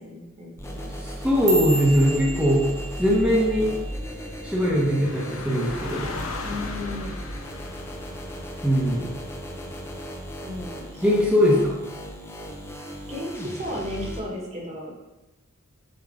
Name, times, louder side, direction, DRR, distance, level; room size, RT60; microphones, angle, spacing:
voice 1, 0.0-0.9 6.4-7.1 10.4-11.3 13.1-14.9, left 1 dB, 30° right, -3 dB, 1.5 m, -34 dB
sound 1, 0.6-14.2, equal, 10° left, 0.8 m, -36 dB
voice 2, 1.0-2.6 3.0-3.7 4.4-6.1 8.6-9.1 11.0-11.8, equal, 5° right, -7 dB, 1.2 m, -21 dB
sound 2, 1.0-5.4 5.7-6.1 6.5-6.9 7.3-7.5 8.1-8.5 8.9-9.8 10.1-10.6 11.3-11.4, right 2 dB, 55° right, 1.6 m, -34 dB
sound 3, 5.0-10.1, left 3 dB, 75° left, 0.8 m, -38 dB
7.8 x 4.7 x 3.7 m, 1.0 s
head